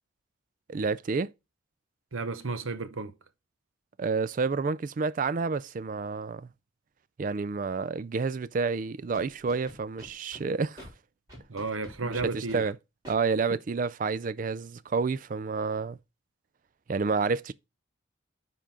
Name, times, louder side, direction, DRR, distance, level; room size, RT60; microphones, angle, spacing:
voice 1, 0.7-1.3 4.0-6.5 7.2-10.9 12.0-12.8 13.1-16.0 16.9-17.5, right 4 dB, 40° right, 0.3 m, -29 dB
voice 2, 2.1-3.1 11.5-12.7, right 3 dB, 80° right, 0.8 m, -33 dB
Scratching (performance technique), 9.1-10.4 10.8-10.9 11.3-12.6 13.0-13.2, equal, 20° right, 3.4 m, -46 dB
10.0 x 3.8 x 3.7 m
head